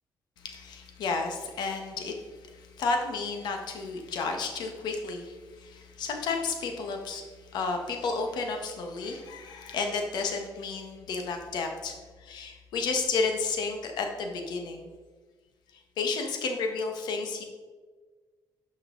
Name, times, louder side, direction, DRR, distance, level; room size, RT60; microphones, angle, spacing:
voice 1, 0.4-14.9 16.0-17.4, left 4 dB, 75° left, 3 dB, 1.5 m, -32 dB
11.0 x 5.8 x 4.0 m, 1.4 s
cardioid pair, 145°, 7 cm